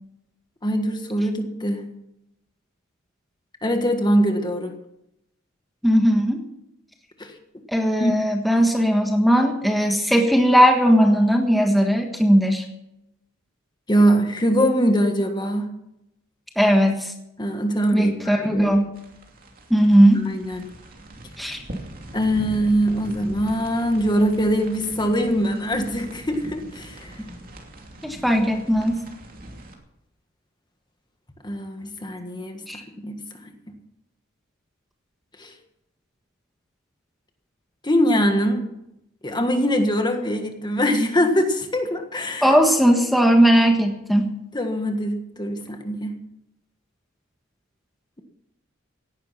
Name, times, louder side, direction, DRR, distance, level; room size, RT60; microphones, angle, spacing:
voice 1, 0.6-1.8 3.6-4.7 7.2-7.3 8.0-8.1 13.9-15.7 17.4-18.7 20.1-20.7 22.1-27.1 31.4-32.6 33.0-33.5 35.4-35.5 37.8-38.6 39.2-42.5 44.5-46.2, equal, 20° left, 5 dB, 1.6 m, -22 dB
voice 2, 5.8-6.4 7.7-12.6 16.6-17.1 17.9-18.9 19.7-20.2 21.4-21.6 28.0-29.0 32.7-32.8 42.4-44.3, equal, ahead, 2 dB, 1.5 m, -18 dB
sound 1, 18.9-29.7, right 1 dB, 45° right, 2.8 m, -40 dB
17.5 x 11.5 x 5.9 m, 0.84 s
head